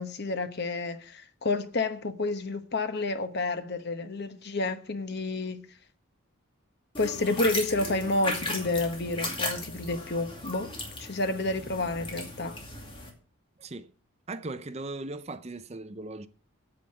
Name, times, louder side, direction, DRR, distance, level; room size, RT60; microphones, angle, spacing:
voice 1, 0.0-5.6 7.0-10.7 11.0-12.6, left 2 dB, 50° left, 1.1 m, -30 dB
sound 1, 6.9-13.1, left 2 dB, 25° left, 2.4 m, -36 dB
voice 2, 13.6-13.9 14.3-16.3, right 2 dB, 30° right, 0.6 m, -38 dB
8.9 x 8.4 x 7.5 m
head